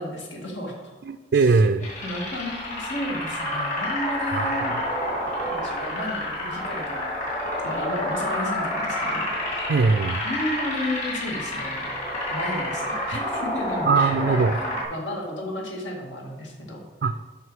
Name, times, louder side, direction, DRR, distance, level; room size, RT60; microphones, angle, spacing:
voice 1, 0.0-0.9 2.0-4.8 5.4-7.1 7.6-9.6 10.2-11.9 12.3-16.8, left 1 dB, 85° left, 0 dB, 1.9 m, -33 dB
voice 2, 1.0-1.9 4.3-4.9 9.7-10.2 13.9-14.6 17.0-17.2, right 4 dB, 60° right, 8 dB, 0.3 m, -21 dB
sound 1, 1.8-14.8, left 1 dB, 40° left, 2.5 m, -29 dB
8.0 x 5.8 x 4.8 m, 1.2 s
head